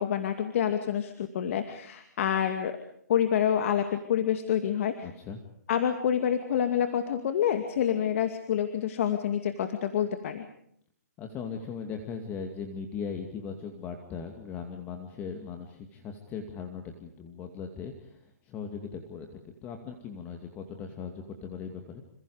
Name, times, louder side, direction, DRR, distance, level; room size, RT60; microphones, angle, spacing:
voice 1, 0.0-2.8 3.1-5.1 5.7-10.5, left 9 dB, 45° left, 7 dB, 2.4 m, -27 dB
voice 2, 5.0-5.4 11.2-22.0, left 6 dB, 20° left, 5 dB, 2.4 m, -39 dB
28.0 x 27.5 x 5.1 m, 0.69 s
hypercardioid pair, 155°, 10 cm